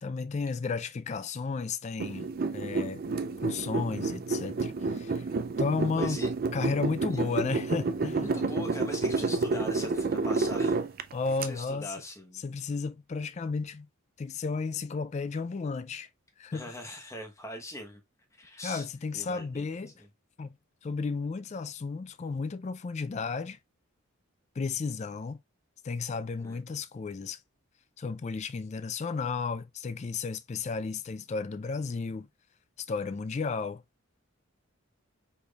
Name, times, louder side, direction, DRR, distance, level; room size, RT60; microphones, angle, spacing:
voice 1, 0.0-3.0 3.4-5.3 5.6-6.2 6.5-8.4 11.1-11.9 12.4-13.9 14.2-16.1 16.4-16.6 18.6-19.9 20.4-20.6 20.8-23.6 24.6-25.4 25.8-27.4 28.0-32.3 32.8-33.8, left 4 dB, 30° left, 0.3 m, -33 dB
sound 1, 2.0-11.5, right 3 dB, 45° right, 0.4 m, -30 dB
voice 2, 5.9-6.3 7.1-7.2 8.2-10.8 11.4-12.4 16.5-18.0 18.4-18.9 19.1-19.7 20.0-20.1 26.4-26.6, left 1 dB, 15° left, 1.0 m, -41 dB
5.0 x 4.3 x 2.3 m
head